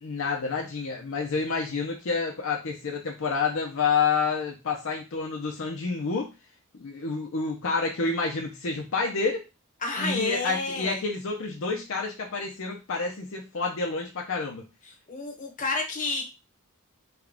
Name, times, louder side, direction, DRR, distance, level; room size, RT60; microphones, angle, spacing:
voice 1, 0.0-6.3 6.8-9.4 10.0-14.7, left 4 dB, 65° left, 0 dB, 0.6 m, -29 dB
voice 2, 9.8-11.0 15.1-16.2, left 3 dB, 35° left, 1 dB, 0.9 m, -30 dB
3.5 x 2.3 x 3.5 m, 0.27 s
head